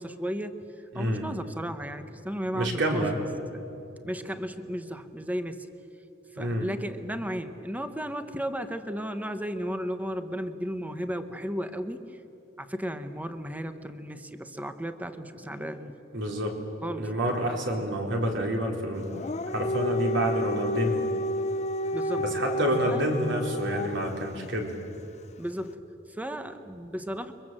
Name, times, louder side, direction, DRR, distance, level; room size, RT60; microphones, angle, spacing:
voice 1, 0.0-3.2 3.5-3.6 4.0-5.7 6.3-12.2 12.6-15.9 16.8-17.1 21.9-22.3 22.9-23.1 25.4-25.8 26.1-27.3, equal, 10° right, 9 dB, 1.2 m, -34 dB
voice 2, 0.9-1.3 2.5-3.2 6.4-6.7 16.1-16.6 17.0-19.1 19.5-21.1 22.2-24.7, right 1 dB, 65° right, 1 dB, 4.2 m, -28 dB
Dog, 19.0-24.2, left 1 dB, 35° left, 0.7 m, -30 dB
29.5 x 24.0 x 7.7 m, 2.8 s
head